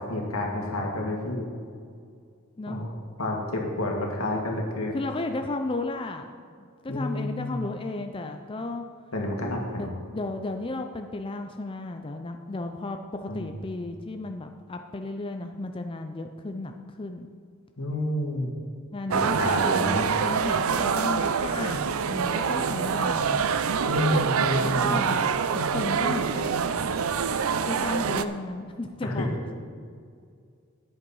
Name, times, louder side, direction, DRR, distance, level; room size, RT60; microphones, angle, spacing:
voice 1, 0.0-1.5 2.7-2.9 3.2-5.0 6.9-7.6 9.1-9.9 13.3-13.5 17.8-18.5 19.1-20.1 23.9-25.0 29.0-29.3, left 1 dB, 85° left, 0 dB, 2.0 m, -29 dB
voice 2, 4.9-6.3 6.6-8.8 9.8-17.3 18.9-23.4 24.5-25.3 25.7-26.7 27.6-29.5, left 2 dB, 25° left, 5 dB, 0.4 m, -34 dB
sound 1, 19.1-28.3, right 6 dB, 80° right, 0.5 m, -25 dB
10.5 x 8.0 x 5.5 m, 2.2 s
head